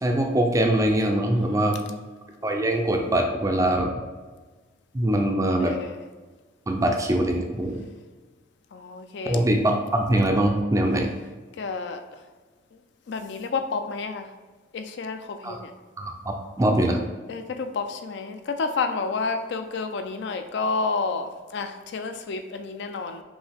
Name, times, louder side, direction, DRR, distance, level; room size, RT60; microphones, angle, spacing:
voice 1, 0.0-1.8 2.4-3.9 4.9-5.7 6.7-7.8 9.3-11.1 15.4-15.6 16.0-17.0, right 1 dB, 15° right, 3 dB, 0.4 m, -23 dB
voice 2, 1.4-2.0 5.6-6.0 8.7-9.4 11.6-12.0 13.1-14.3 14.7-15.7 17.3-23.2, left 4 dB, 65° left, 7 dB, 0.4 m, -30 dB
5.3 x 2.8 x 3.4 m, 1.3 s
head